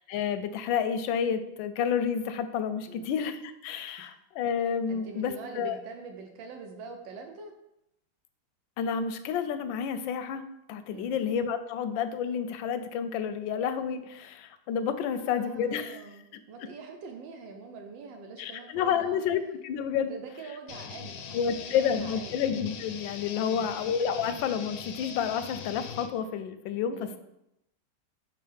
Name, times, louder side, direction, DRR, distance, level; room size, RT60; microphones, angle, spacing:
voice 1, 0.0-5.8 8.8-10.4 10.7-16.0 18.4-20.1 21.3-27.2, left 7 dB, 90° left, 10 dB, 1.3 m, -30 dB
voice 2, 4.9-7.5 10.9-11.2 15.1-16.2 16.5-19.2 19.9-22.4 23.4-23.7 26.9-27.2, right 4 dB, 80° right, 4 dB, 1.4 m, -44 dB
sound 1, 20.7-26.1, left 7 dB, 70° left, 0.9 m, -41 dB
6.4 x 4.4 x 3.4 m, 0.83 s
omnidirectional pair, 2.0 m